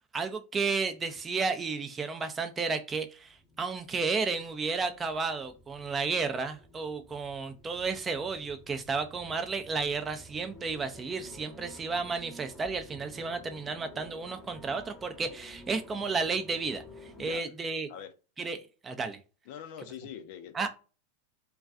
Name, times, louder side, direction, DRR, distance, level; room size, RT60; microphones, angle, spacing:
voice 1, 0.1-16.8 17.2-17.9 18.4-19.2 20.5-20.7, right 4 dB, 20° right, 0.4 m, -32 dB
sound 1, 3.2-17.4, equal, ahead, 0.8 m, -52 dB
voice 2, 19.5-20.7, left 8 dB, 55° left, 0.4 m, -43 dB
2.3 x 2.3 x 2.5 m
hypercardioid pair, 95°, 0 cm